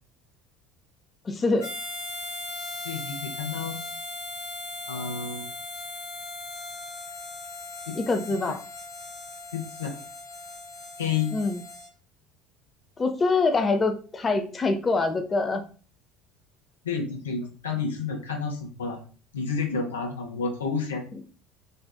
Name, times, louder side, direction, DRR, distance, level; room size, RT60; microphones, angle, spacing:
voice 1, 1.2-1.7 8.1-8.6 11.3-11.6 13.0-15.6 21.1-21.2, left 3 dB, 30° left, 7 dB, 0.4 m, -25 dB
Harmonica, 1.6-11.9, left 2 dB, 65° left, 1.1 m, -38 dB
voice 2, 2.8-3.8 4.9-5.5 7.9-8.0 9.5-10.0 11.0-11.3 16.8-19.0 19.3-21.0, left 5 dB, 90° left, 3 dB, 0.5 m, -30 dB
2.5 x 2.4 x 2.2 m, 0.39 s
hypercardioid pair, 70°, 0 cm